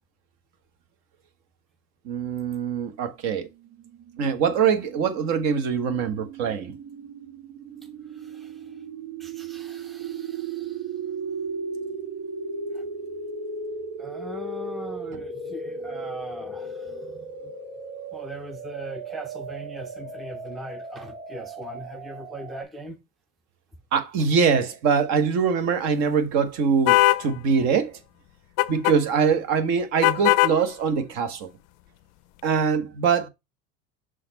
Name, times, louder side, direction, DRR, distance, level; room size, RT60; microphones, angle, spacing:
voice 1, 2.0-3.5 4.2-6.8 23.9-28.0 28.7-31.5 32.4-33.3, right 6 dB, 60° right, 1.3 m, -23 dB
sound 1, 3.5-22.6, right 3 dB, 90° right, 2.1 m, -36 dB
voice 2, 8.1-8.8 9.2-10.9 12.7-12.9 14.0-17.5 18.1-23.0, right 1 dB, ahead, 0.4 m, -40 dB
sound 2, 26.9-27.2 28.6-29.0 30.0-30.6, left 18 dB, 60° left, 0.4 m, -19 dB
6.4 x 4.1 x 4.0 m
cardioid pair, 150°, 31 cm